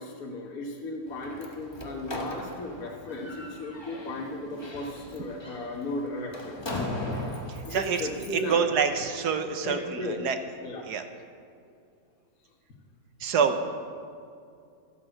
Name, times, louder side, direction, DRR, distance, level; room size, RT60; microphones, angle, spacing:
voice 1, 0.0-6.7 7.6-8.7 9.6-10.2 10.6-10.9, left 1 dB, 50° left, -2 dB, 1.8 m, -35 dB
Slam, 1.1-8.5, left 1 dB, 15° left, 1.4 m, -38 dB
voice 2, 7.5-8.0 8.3-10.4 10.8-11.0 13.2-13.7, right 6 dB, 65° right, 8 dB, 1.3 m, -27 dB
12.5 x 10.5 x 7.8 m, 2.4 s
omnidirectional pair, 2.0 m